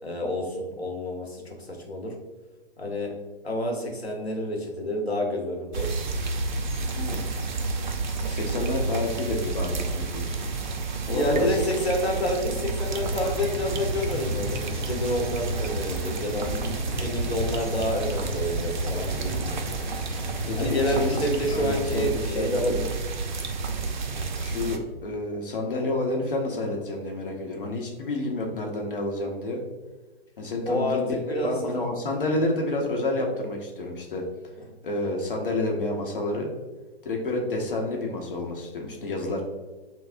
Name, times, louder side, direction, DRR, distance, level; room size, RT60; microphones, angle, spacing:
voice 1, 0.0-2.1 2.8-3.1 3.4-6.0 11.1-16.5 16.9-19.6 20.6-22.8 30.6-31.8, left 1 dB, 90° left, 0 dB, 1.0 m, -29 dB
sound 1, 5.7-24.8, right 3 dB, 50° right, 0.4 m, -30 dB
voice 2, 8.3-10.5 11.1-11.6 16.5-16.8 17.5-17.6 20.5-21.2 21.5-22.8 24.4-29.6 30.4-34.2 34.8-36.5 37.0-39.4, left 2 dB, 60° left, 1 dB, 0.8 m, -29 dB
sound 2, 12.8-22.2, left 1 dB, ahead, 1.3 m, -35 dB
5.9 x 2.0 x 2.5 m, 1.2 s
figure-of-eight pair, 125°, 31 cm